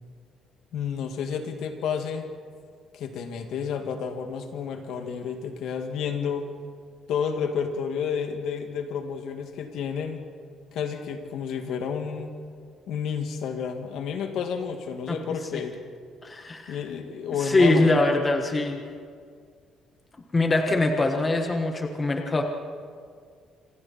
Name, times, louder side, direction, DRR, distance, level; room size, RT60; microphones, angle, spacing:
voice 1, 0.7-2.2 2.9-6.5 7.1-10.2 10.7-12.3 12.9-15.8 16.7-18.0, left 7 dB, 70° left, 5 dB, 2.3 m, -30 dB
voice 2, 16.2-16.8 17.4-18.8 20.3-22.4, left 2 dB, 15° left, 4 dB, 1.3 m, -23 dB
26.5 x 26.5 x 4.5 m, 2.1 s
cardioid pair, 175°, 0 cm